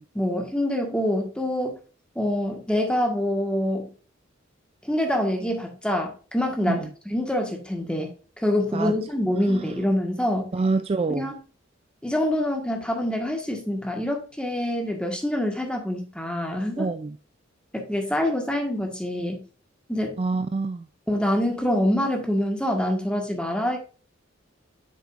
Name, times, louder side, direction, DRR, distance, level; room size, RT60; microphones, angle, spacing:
voice 1, 0.1-1.8 2.1-3.9 4.8-8.1 8.4-10.5 11.1-11.4 12.0-16.9 17.7-19.4 19.9-20.2 21.1-23.8, left 1 dB, 5° left, 1.6 m, -25 dB
voice 2, 10.5-11.3 16.8-17.2 20.2-20.9, right 3 dB, 30° right, 0.3 m, -26 dB
8.0 x 6.3 x 2.5 m
head